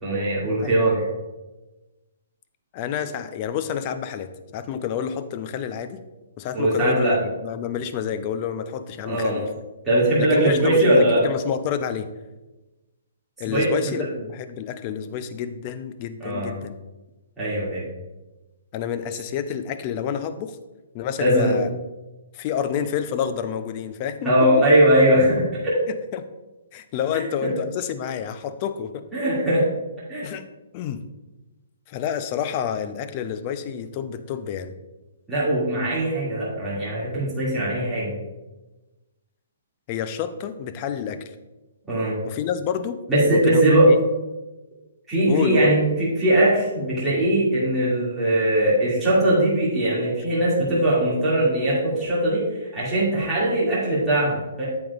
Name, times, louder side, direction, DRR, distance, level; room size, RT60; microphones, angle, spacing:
voice 1, 0.0-1.0 6.5-7.2 9.1-9.4 9.8-11.2 13.5-13.9 16.2-16.5 17.4-17.8 21.2-21.5 24.2-25.7 27.4-27.5 29.1-29.7 30.1-30.3 35.3-38.1 41.9-42.2 43.1-43.9 45.1-52.4 52.7-54.7, right 1 dB, 5° right, -11 dB, 2.2 m, -20 dB
voice 2, 2.7-6.0 6.4-9.5 10.2-12.1 13.4-16.7 18.7-20.6 20.9-21.7 22.3-24.3 25.9-26.3 26.7-29.0 30.2-30.5 30.7-31.0 31.9-34.7 39.9-41.3 42.2-43.0 43.3-44.0 45.3-45.7, left 8 dB, 25° left, 11 dB, 0.4 m, -29 dB
8.9 x 7.8 x 2.4 m, 1.1 s
hypercardioid pair, 170°, 0 cm